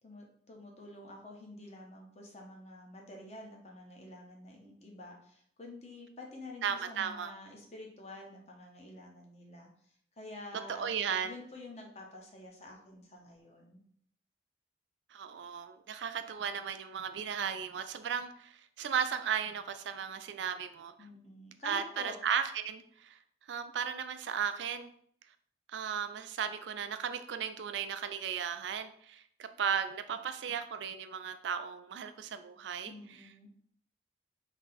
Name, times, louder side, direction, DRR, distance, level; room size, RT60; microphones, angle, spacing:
voice 1, 0.0-9.7 10.2-10.9 11.2-13.8 21.0-22.1 32.9-33.5, left 1 dB, 35° left, 0 dB, 0.8 m, -49 dB
voice 2, 6.6-7.3 10.7-11.4 15.1-20.9 21.6-23.2 23.5-24.9 25.7-32.9, right 7 dB, 90° right, 9 dB, 0.4 m, -35 dB
3.5 x 2.7 x 4.0 m, 0.64 s
head